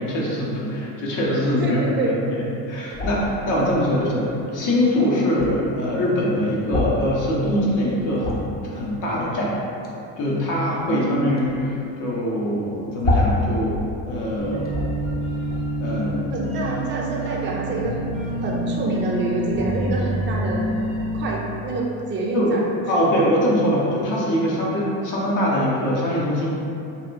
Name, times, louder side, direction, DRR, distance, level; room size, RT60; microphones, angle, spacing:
voice 1, 0.0-9.5 10.2-11.7 12.0-13.8 14.1-14.8 15.8-16.1 22.3-26.5, equal, 55° left, -5 dB, 0.8 m, -23 dB
voice 2, 1.6-2.2 10.9-11.4 16.3-20.6 21.1-22.6, right 2 dB, 30° right, -2 dB, 0.5 m, -27 dB
sound 1, 2.9-3.3 4.5-4.6 4.8-4.9 5.2-5.5 6.6-7.0 7.6-7.7 7.9-8.6 9.8-10.0 10.7-11.0 11.4-11.6 12.0-12.1 12.4-12.5 13.0-14.0 14.3-14.4 14.6-15.1 15.4-15.6, left 2 dB, 25° left, 0.5 m, -25 dB
sound 2, 14.4-21.2, right 1 dB, 80° left, 0.9 m, -27 dB
2.7 x 2.2 x 2.5 m, 2.7 s
hypercardioid pair, 75°, 38 cm